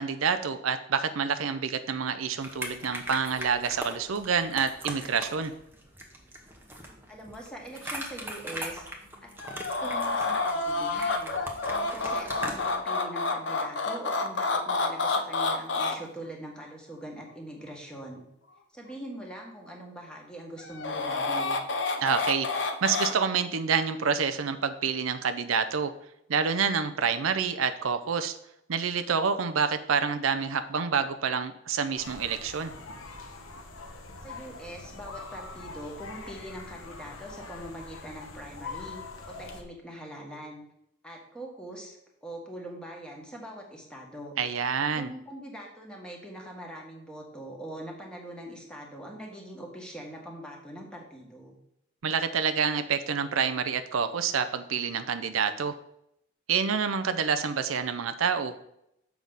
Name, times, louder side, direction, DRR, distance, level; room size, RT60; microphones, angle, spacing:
voice 1, 0.0-5.5 22.0-25.9 26.3-28.4 28.7-32.7 44.4-45.1 52.0-55.8 56.5-58.7, right 6 dB, 85° right, 10 dB, 0.6 m, -28 dB
sound 1, 2.4-12.8, right 1 dB, 10° right, 1.0 m, -40 dB
voice 2, 7.1-8.8 9.2-9.3 9.8-11.3 11.7-18.2 18.7-21.6 34.2-39.0 39.3-40.6 41.0-44.3 44.9-51.6, right 1 dB, 5° left, -1 dB, 1.5 m, -42 dB
sound 2, 9.4-15.9 20.6-23.1, left 3 dB, 60° left, 0.8 m, -29 dB
sound 3, 32.0-39.6, left 3 dB, 90° left, 1.1 m, -43 dB
7.2 x 5.8 x 3.9 m, 0.79 s
head